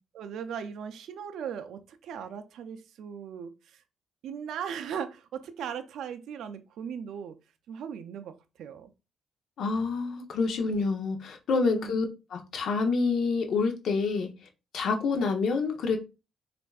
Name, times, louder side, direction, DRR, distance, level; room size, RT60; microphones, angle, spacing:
voice 1, 0.1-3.8 4.2-7.4 7.7-8.9 11.7-11.9, right 7 dB, 75° right, 0.4 m, -38 dB
voice 2, 9.6-12.1 12.3-14.3 14.7-16.0, left 4 dB, 70° left, 0.7 m, -27 dB
4.2 x 2.5 x 2.3 m
cardioid pair, 90°, 0 cm